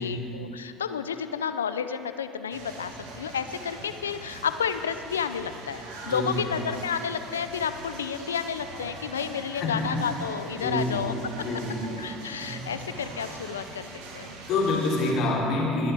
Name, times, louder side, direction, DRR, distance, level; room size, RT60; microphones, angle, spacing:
voice 1, 0.0-11.1 12.0-13.9 14.1-14.3, left 7 dB, 90° left, 11 dB, 0.4 m, -31 dB
sound 1, 2.5-15.1, right 3 dB, 75° right, 1.6 m, -42 dB
voice 2, 6.0-6.5 9.5-10.0 10.5-11.9 12.4-12.6 13.4-13.5 14.5-15.9, left 2 dB, 60° left, -3 dB, 2.8 m, -28 dB
21.5 x 10.0 x 3.4 m, 2.8 s
hypercardioid pair, 65°, 0 cm